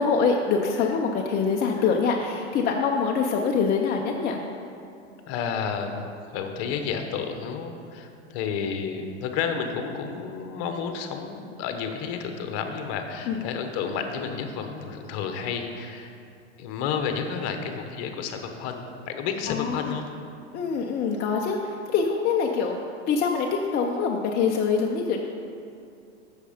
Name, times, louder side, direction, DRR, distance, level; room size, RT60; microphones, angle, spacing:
voice 1, 0.0-4.4 13.3-13.4 19.5-20.0 20.5-22.8 23.1-23.5 23.7-25.2, left 5 dB, 30° left, 1 dB, 0.6 m, -24 dB
voice 2, 5.3-16.1 16.6-20.0, left 6 dB, 45° left, 5 dB, 1.0 m, -31 dB
8.2 x 6.7 x 5.1 m, 2.5 s
hypercardioid pair, 120°, 33 cm